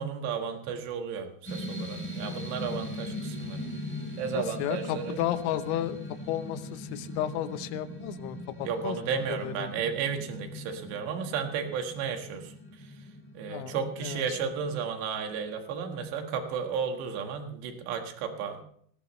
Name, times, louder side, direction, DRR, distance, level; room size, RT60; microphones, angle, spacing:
voice 1, 0.0-3.7 4.2-5.2 8.6-12.5 13.4-18.6, right 6 dB, 70° right, 4 dB, 3.7 m, -33 dB
sound 1, 1.4-14.9, left 1 dB, 5° left, 2.8 m, -40 dB
voice 2, 4.3-6.0 6.3-8.4 8.8-9.7 13.5-14.4, left 12 dB, 80° left, 10 dB, 3.3 m, -33 dB
19.0 x 18.5 x 3.2 m, 0.62 s
omnidirectional pair, 5.4 m